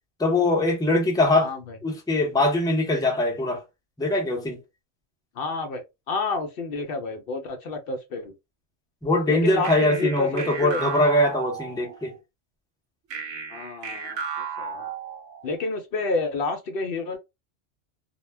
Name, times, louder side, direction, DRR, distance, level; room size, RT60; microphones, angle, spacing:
voice 1, 0.2-1.5 1.8-3.6 4.0-4.6 9.0-12.1, left 1 dB, 5° left, 0.3 m, -22 dB
voice 2, 5.4-8.3 9.3-10.9 13.5-14.2 14.6-14.9 15.4-17.2, left 3 dB, 60° left, 0.6 m, -29 dB
sound 1, 9.6-12.2 13.1-15.6, right 6 dB, 90° right, 1.0 m, -34 dB
2.2 x 2.1 x 3.2 m
omnidirectional pair, 1.2 m